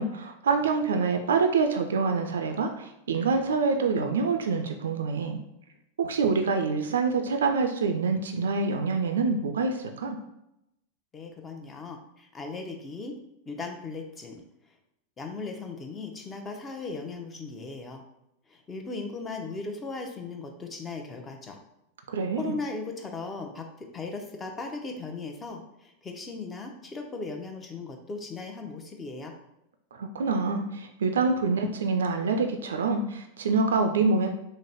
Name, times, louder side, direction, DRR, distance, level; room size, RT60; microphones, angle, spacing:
voice 1, 0.0-5.4 6.0-10.2 22.1-22.5 30.0-34.3, right 4 dB, 80° right, 5 dB, 0.3 m, -26 dB
voice 2, 11.1-13.2 13.5-14.4 15.2-18.0 18.5-21.6 22.3-29.3, left 3 dB, 20° left, 3 dB, 0.6 m, -37 dB
3.1 x 2.1 x 4.0 m, 0.85 s
hypercardioid pair, 100°, 0 cm